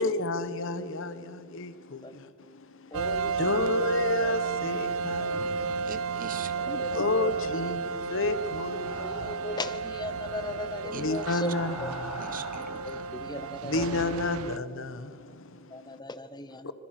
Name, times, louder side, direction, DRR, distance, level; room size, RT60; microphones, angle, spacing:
voice 1, 0.0-5.9 6.9-9.6 10.1-10.2 10.9-12.4 13.4-16.0 16.6-16.7, left 2 dB, 65° left, 1.1 m, -32 dB
voice 2, 2.9-3.7 4.2-4.3 5.2-5.8 6.6-7.3 9.0-11.5 11.8-11.9 12.9-14.1 15.7-16.7, left 2 dB, 20° left, 0.9 m, -38 dB
sound 1, 2.9-14.6, right 4 dB, 85° right, 0.5 m, -32 dB
voice 3, 5.8-7.0 10.9-11.1 12.2-13.1, right 5 dB, 40° right, 0.9 m, -41 dB
sound 2, 8.5-9.6 10.9-13.1, equal, 5° right, 6.6 m, -43 dB
25.5 x 22.0 x 5.9 m
head